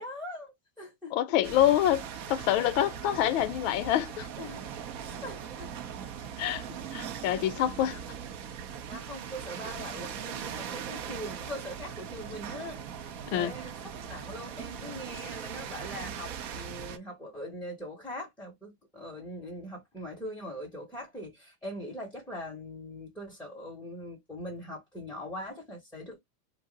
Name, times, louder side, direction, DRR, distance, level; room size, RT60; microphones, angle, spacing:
voice 1, 0.0-1.1 4.4-4.7 5.0-5.7 6.4-6.8 8.9-12.8 13.3-26.2, equal, 5° left, 0.6 m, -41 dB
voice 2, 1.1-4.3 6.4-6.6 6.9-8.0 13.3-13.5, left 12 dB, 50° left, 0.5 m, -26 dB
sound 1, 1.4-17.0, right 8 dB, 45° right, 0.4 m, -40 dB
2.6 x 2.0 x 3.7 m
supercardioid pair, 135°, 49 cm